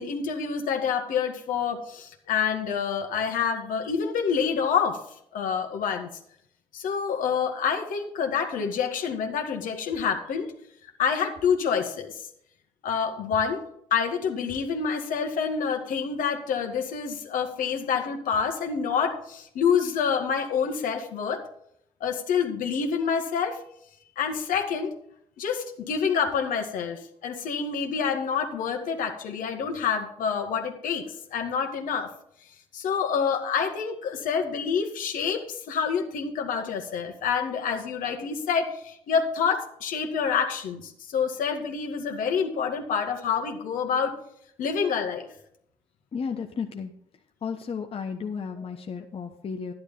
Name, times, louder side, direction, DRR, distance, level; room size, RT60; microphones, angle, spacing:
voice 1, 0.0-5.0 5.3-6.1 6.7-10.5 11.0-12.3 12.8-13.6 13.9-21.4 22.0-23.6 24.2-24.9 25.4-31.0 31.3-32.1 32.7-44.2 44.6-45.3, left 6 dB, 65° left, 4 dB, 1.8 m, -27 dB
voice 2, 46.1-47.0 47.4-49.7, left 6 dB, 40° left, 4 dB, 1.1 m, -33 dB
12.0 x 11.0 x 3.8 m, 0.70 s
hypercardioid pair, 55°, 15 cm